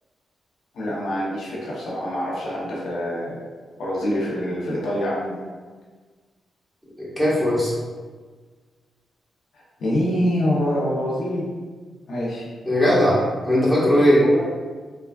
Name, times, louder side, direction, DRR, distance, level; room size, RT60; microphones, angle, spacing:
voice 1, 0.7-3.5 3.8-5.4 9.8-11.4 12.1-12.5 14.2-14.4, equal, 75° left, -6 dB, 0.7 m, -25 dB
voice 2, 7.0-7.7 12.6-13.2 13.4-14.2, equal, ahead, -10 dB, 1.4 m, -18 dB
3.3 x 2.2 x 2.3 m, 1.4 s
cardioid pair, 75°, 0 cm